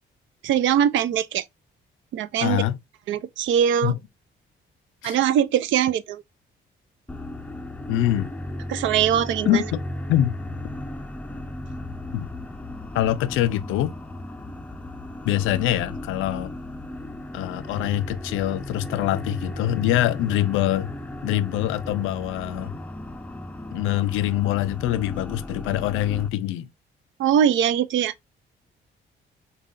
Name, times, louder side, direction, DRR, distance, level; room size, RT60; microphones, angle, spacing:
voice 1, 0.4-1.4 2.1-2.6 3.1-3.9 5.0-6.2 8.7-9.6 27.2-28.1, right 9 dB, 75° right, 0.4 m, -21 dB
voice 2, 2.4-2.8 3.8-4.0 5.0-5.2 7.9-8.3 9.5-9.8 10.1-10.3 12.1-12.3 12.9-14.0 15.2-16.5 17.3-20.9 21.2-22.8 23.7-26.7, left 13 dB, 90° left, 0.4 m, -24 dB
sound 1, 7.1-26.3, left 1 dB, 5° left, 0.4 m, -35 dB
5.2 x 2.3 x 2.4 m
cardioid pair, 90°, 20 cm